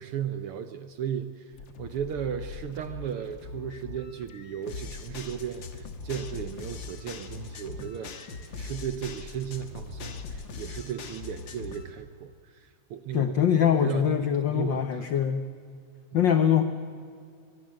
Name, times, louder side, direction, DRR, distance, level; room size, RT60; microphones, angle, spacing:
voice 1, 0.0-8.3 8.6-15.1, right 9 dB, 70° right, 10 dB, 1.4 m, -36 dB
sound 1, 1.5-11.9, left 4 dB, 50° left, 1.8 m, -41 dB
voice 2, 13.1-15.5 16.1-16.6, left 9 dB, 80° left, 9 dB, 1.0 m, -23 dB
23.0 x 21.5 x 7.7 m, 2.2 s
omnidirectional pair, 3.3 m